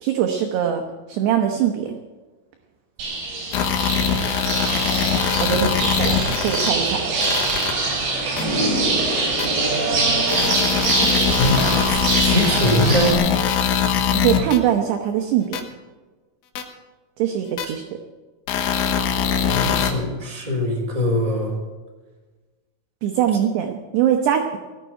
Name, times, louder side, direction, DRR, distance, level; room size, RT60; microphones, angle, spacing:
voice 1, 0.0-0.8 1.1-1.9 5.4-7.0 11.0-11.4 14.1-15.6 17.2-17.8 23.0-24.6, right 10 dB, 75° right, 4 dB, 2.5 m, -22 dB
sound 1, 3.0-13.1, right 3 dB, 55° right, 6.0 m, -23 dB
sound 2, 3.5-6.7 7.2-7.7 8.4-8.5 9.4-9.5 10.3-14.6 15.5-15.6 16.6-16.7 17.6-17.7 18.5-19.9, left 7 dB, 75° left, 3.7 m, -22 dB
voice 2, 11.9-13.2 17.7-17.8 19.5-21.5, left 1 dB, 10° right, -1 dB, 3.1 m, -22 dB
18.0 x 7.5 x 9.2 m, 1.3 s
omnidirectional pair, 5.9 m